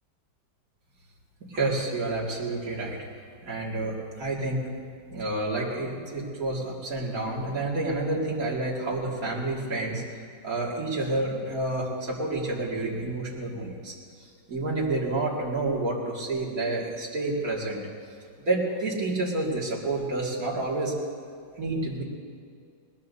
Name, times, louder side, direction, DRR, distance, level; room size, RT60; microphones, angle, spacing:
voice 1, 1.4-3.0 3.4-4.6 5.1-10.0 10.4-13.9 14.5-17.8 18.4-20.9 21.6-22.0, right 2 dB, 50° right, -4 dB, 2.8 m, -29 dB
20.5 x 19.5 x 2.8 m, 2.2 s
omnidirectional pair, 2.0 m